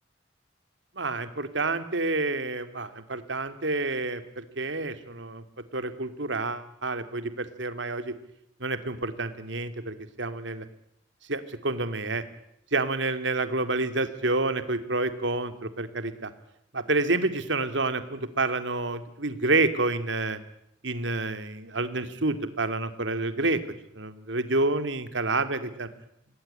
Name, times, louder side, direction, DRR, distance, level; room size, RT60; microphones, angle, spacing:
voice 1, 1.0-5.4 5.7-8.1 8.6-10.7 11.3-12.2 12.7-16.3 16.7-20.4 20.8-23.6 24.0-25.9, right 2 dB, 75° right, 11 dB, 2.4 m, -28 dB
27.0 x 19.0 x 10.0 m, 0.77 s
head